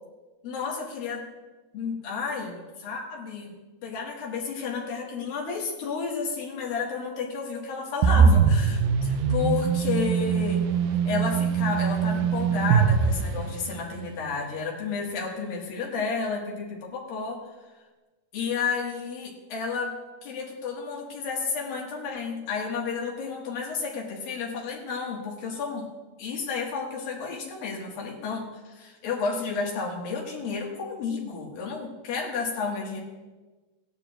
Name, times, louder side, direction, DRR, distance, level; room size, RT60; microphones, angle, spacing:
voice 1, 0.4-1.3 1.7-3.6 3.8-10.6 11.1-17.4 18.3-20.0 20.2-25.9 26.2-33.0, left 5 dB, 85° left, -2 dB, 3.7 m, -31 dB
sound 1, 8.0-14.0, right 6 dB, 90° right, 2.4 m, -22 dB
17.0 x 11.0 x 2.5 m, 1.2 s
omnidirectional pair, 4.0 m